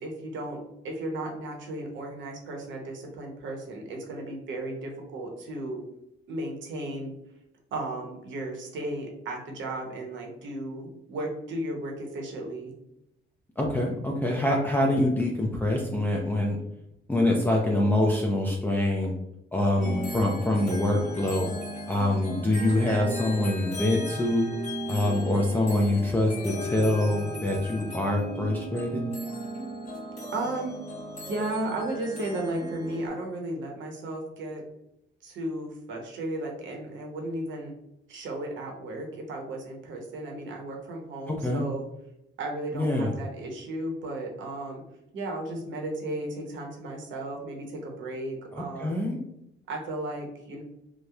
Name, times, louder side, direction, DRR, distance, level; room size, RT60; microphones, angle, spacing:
voice 1, 0.0-5.8 6.3-7.1 7.7-12.7 30.3-30.8 31.3-34.6 35.2-37.7 38.1-41.9 42.4-44.8 45.1-49.1 49.7-50.6, right 1 dB, 75° right, 1 dB, 0.7 m, -34 dB
voice 2, 13.6-16.6 17.1-19.1 19.5-21.5 21.9-24.5 24.9-29.0 41.4-41.6 42.7-43.1 48.5-49.2, left 1 dB, 10° left, -2 dB, 0.4 m, -25 dB
sound 1, 19.8-33.1, right 1 dB, 35° left, 1.0 m, -36 dB
2.8 x 2.0 x 2.3 m, 0.81 s
cardioid pair, 90°, 20 cm